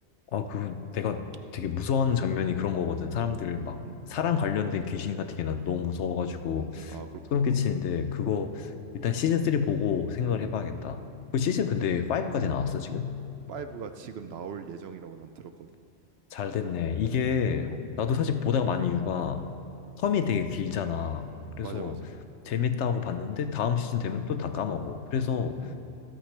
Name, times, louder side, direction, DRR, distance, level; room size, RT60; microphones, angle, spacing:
voice 1, 0.3-6.9 7.3-11.1 11.3-13.2 16.3-19.5 20.0-22.0 22.4-25.7, left 7 dB, 70° left, 9 dB, 0.9 m, -28 dB
voice 2, 6.5-7.7 10.7-10.9 13.5-15.7 17.7-17.9 21.6-22.1 25.6-25.7, right 6 dB, 65° right, 9 dB, 0.7 m, -41 dB
25.0 x 8.8 x 3.3 m, 2.6 s
omnidirectional pair, 1.3 m